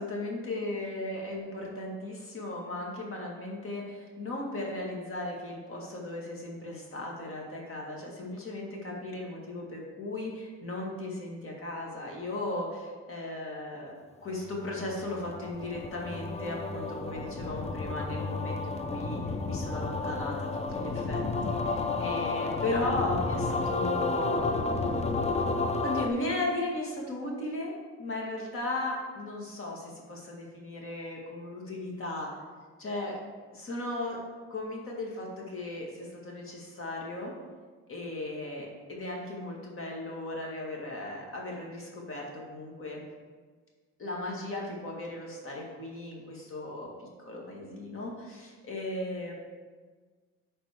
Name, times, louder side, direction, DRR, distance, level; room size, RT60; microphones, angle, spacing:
voice 1, 0.0-13.9 14.2-24.5 25.8-27.7 28.0-32.3 32.8-33.2 33.5-34.2 34.5-37.3 37.9-43.0 44.0-49.3, left 2 dB, 45° left, -1 dB, 2.1 m, -36 dB
sound 1, 14.5-26.1, left 3 dB, 20° left, 0.6 m, -31 dB
11.5 x 4.3 x 3.6 m, 1.4 s
cardioid pair, 90°, 30 cm